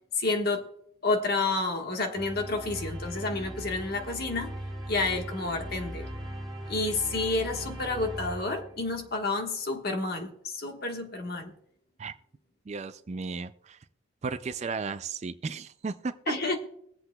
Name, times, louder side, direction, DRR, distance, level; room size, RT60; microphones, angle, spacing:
voice 1, 0.2-0.7 1.0-4.5 4.9-6.1 6.7-11.5 16.3-16.6, left 3 dB, 45° left, 3 dB, 1.4 m, -30 dB
sound 1, 2.1-9.2, equal, ahead, 2.7 m, -39 dB
voice 2, 12.7-13.8 14.2-16.5, right 4 dB, 30° right, 12 dB, 0.3 m, -35 dB
23.0 x 7.9 x 2.3 m, 0.71 s
head